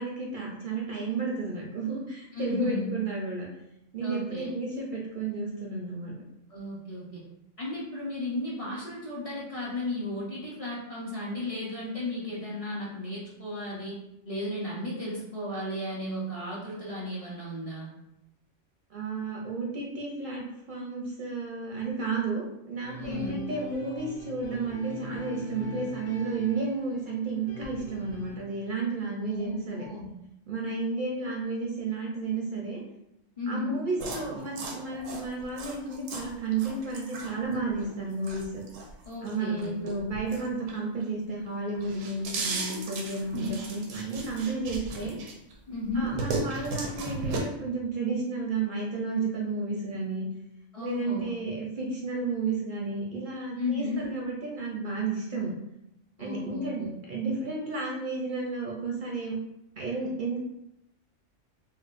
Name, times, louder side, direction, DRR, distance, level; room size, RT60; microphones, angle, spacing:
voice 1, 0.0-3.5 3.9-6.1 18.9-29.8 30.5-32.8 33.5-38.6 39.2-45.1 45.9-50.3 50.8-55.5 56.2-56.8 57.1-59.3 59.8-60.4, right 3 dB, 60° right, -2 dB, 0.5 m, -32 dB
voice 2, 2.3-2.9 4.0-4.5 6.5-7.2 7.6-14.0 14.2-17.9 22.9-23.4 29.3-30.1 33.4-33.8 39.0-39.7 43.3-43.5 45.7-46.1 50.7-51.2 53.6-54.1 56.2-56.9, left 1 dB, 40° left, -5 dB, 0.6 m, -34 dB
sound 1, 22.8-28.4, left 1 dB, 75° left, 1.0 m, -43 dB
sound 2, 34.0-41.1 41.5-45.5 45.9-47.4, right 3 dB, 90° right, 1.0 m, -36 dB
4.4 x 2.1 x 2.4 m, 0.85 s
omnidirectional pair, 1.3 m